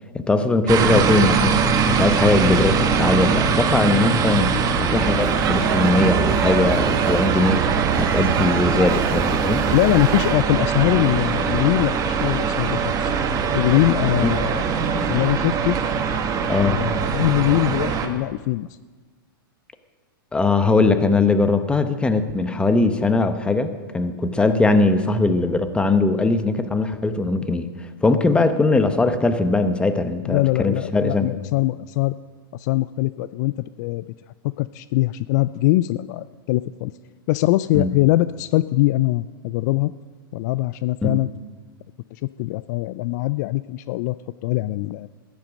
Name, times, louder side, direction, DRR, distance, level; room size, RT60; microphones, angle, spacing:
voice 1, 0.1-4.5 4.8-7.6 8.0-9.6 14.2-14.3 16.5-16.8 20.3-31.3 37.7-37.9 41.0-41.2, left 3 dB, 10° left, 10 dB, 0.9 m, -20 dB
sound 1, 0.7-18.1, right 6 dB, 30° right, 1.3 m, -21 dB
Speech / Shout / Subway metro underground, 5.1-10.4, right 8 dB, 80° right, 1.1 m, -31 dB
voice 2, 9.7-13.1 13.5-15.8 16.6-18.7 30.2-32.1 32.5-33.5 33.8-34.0 34.6-36.9 37.3-39.9 40.3-41.3 42.1-44.2 44.4-45.1, left 17 dB, 50° left, 16 dB, 0.4 m, -22 dB
14.0 x 10.5 x 6.3 m, 1.4 s
hypercardioid pair, 125°, 12 cm